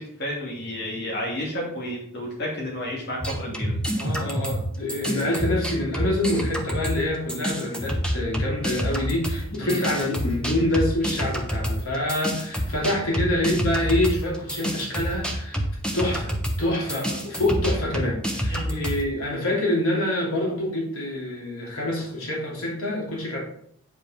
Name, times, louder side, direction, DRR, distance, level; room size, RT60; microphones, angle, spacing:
voice 1, 0.0-3.7 9.5-9.8 18.5-18.9, left 1 dB, 50° left, -4 dB, 2.7 m, -31 dB
sound 1, 3.2-7.0 7.3-19.0, equal, 5° left, 1.0 m, -28 dB
voice 2, 4.0-15.6 15.9-23.4, left 1 dB, 80° left, -3 dB, 3.0 m, -26 dB
9.3 x 5.3 x 5.0 m, 0.69 s
head